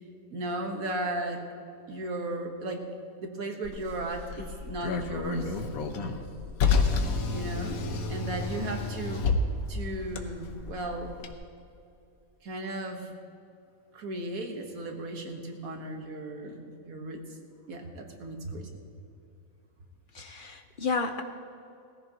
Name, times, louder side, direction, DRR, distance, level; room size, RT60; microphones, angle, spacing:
voice 1, 0.3-1.4 1.9-2.9 3.2-5.6 7.3-7.8 8.1-9.3 9.7-11.2 12.4-13.1 13.9-17.2 17.7-18.7, right 2 dB, 85° right, 3 dB, 1.8 m, -36 dB
Car, 3.6-11.3, left 4 dB, 90° left, 1.4 m, -30 dB
voice 2, 20.1-21.2, left 4 dB, 45° left, 6 dB, 0.8 m, -32 dB
19.5 x 14.5 x 2.9 m, 2.6 s
omnidirectional pair, 1.5 m